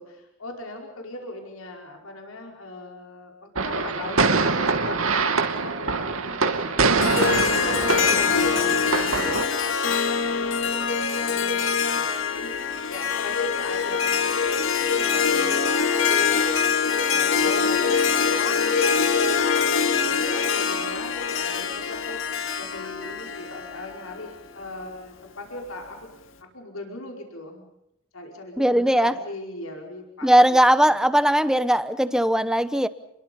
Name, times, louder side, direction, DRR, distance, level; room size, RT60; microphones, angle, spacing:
voice 1, 0.0-16.5 17.0-26.0 26.4-27.7 28.1-30.3 30.8-30.9, left 2 dB, 85° left, 5.1 m, -39 dB
sound 1, 3.6-9.5, right 4 dB, 80° right, 2.4 m, -24 dB
Harp, 7.0-24.3, left 6 dB, 65° left, 2.5 m, -24 dB
voice 2, 28.6-29.1 30.2-32.9, right 1 dB, 5° right, 1.0 m, -19 dB
30.0 x 22.5 x 5.4 m
head